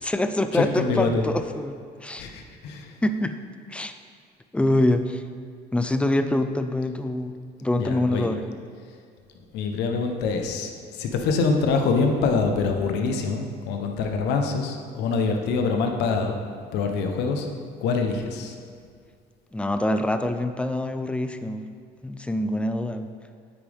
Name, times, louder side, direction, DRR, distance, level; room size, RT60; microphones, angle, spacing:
voice 1, 0.0-2.2 3.0-3.4 3.7-3.9 4.5-5.2 5.7-7.3 7.6-8.4 19.5-21.6 22.0-23.1, left 1 dB, 5° left, 9 dB, 0.5 m, -25 dB
voice 2, 0.5-1.3 2.2-2.9 7.8-8.3 9.5-16.4 16.7-17.5 17.8-18.5, left 4 dB, 85° left, 4 dB, 1.0 m, -25 dB
9.1 x 8.7 x 3.5 m, 2.1 s
cardioid pair, 110°, 17 cm